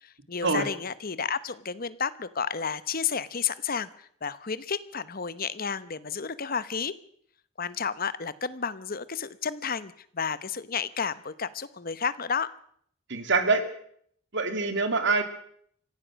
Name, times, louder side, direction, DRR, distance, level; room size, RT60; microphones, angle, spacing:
voice 1, 0.0-6.9 7.6-12.5, left 6 dB, 45° left, 15 dB, 1.0 m, -32 dB
voice 2, 13.1-13.6 14.3-15.2, right 3 dB, 60° right, 8 dB, 2.6 m, -24 dB
25.0 x 16.5 x 6.4 m, 0.65 s
head